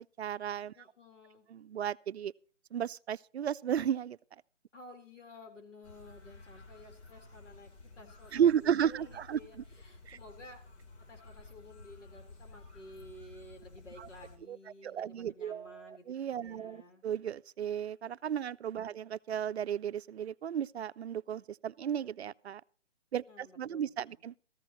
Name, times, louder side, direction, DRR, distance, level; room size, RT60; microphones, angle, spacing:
voice 1, 0.0-0.7 1.5-2.3 2.7-4.2 8.3-9.4 10.1-10.2 14.0-14.1 14.5-14.6 14.8-22.6 23.1-24.3, right 9 dB, 60° right, 0.5 m, -34 dB
voice 2, 0.7-1.5 4.7-7.7 8.0-10.6 11.1-16.0 16.4-17.0 18.8-19.0 23.2-24.2, left 1 dB, 80° left, 4.3 m, -53 dB
sound 1, 5.8-14.4, left 3 dB, 65° left, 3.9 m, -53 dB
15.5 x 14.0 x 3.1 m
hypercardioid pair, 165°, 36 cm